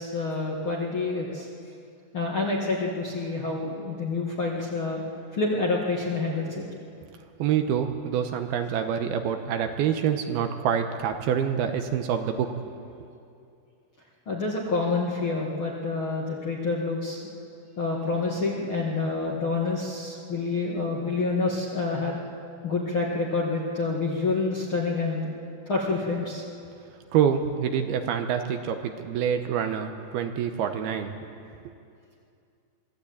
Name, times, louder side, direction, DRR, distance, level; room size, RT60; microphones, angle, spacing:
voice 1, 0.0-1.5 2.1-5.0 5.3-6.6 14.3-17.2 17.8-22.2 22.6-25.3 25.7-26.4, left 3 dB, 45° left, -3 dB, 1.8 m, -28 dB
voice 2, 7.4-12.5 27.1-31.1, right 8 dB, 75° right, 6 dB, 2.7 m, -26 dB
24.0 x 15.0 x 8.6 m, 2.5 s
omnidirectional pair, 4.9 m